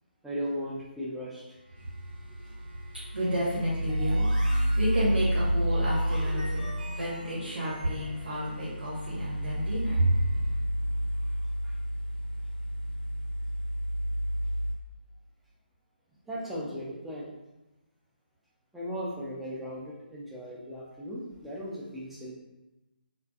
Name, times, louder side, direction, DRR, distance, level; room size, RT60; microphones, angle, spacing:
voice 1, 0.2-1.6 11.6-11.8 16.3-17.3 18.7-22.3, equal, 5° right, -7 dB, 0.4 m, -37 dB
sound 1, 1.8-14.7, equal, 85° left, 0.7 m, -30 dB
voice 2, 1.8-10.6, right 1 dB, 85° right, -8 dB, 0.9 m, -31 dB
sound 2, 3.9-8.8, right 2 dB, 55° right, 0.6 m, -45 dB
2.5 x 2.4 x 2.3 m, 0.99 s
figure-of-eight pair, 150°, 6 cm